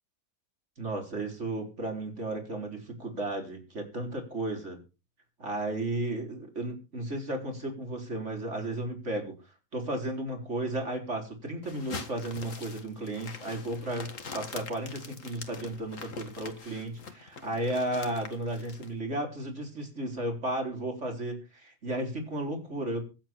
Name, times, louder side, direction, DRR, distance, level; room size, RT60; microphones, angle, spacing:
voice 1, 0.8-4.8 5.4-9.3 9.7-23.0, right 1 dB, 50° right, 3 dB, 4.4 m, -34 dB
sound 1, 11.6-18.9, left 4 dB, 55° left, 2.1 m, -44 dB
23.0 x 7.9 x 4.4 m, 0.32 s
omnidirectional pair, 1.6 m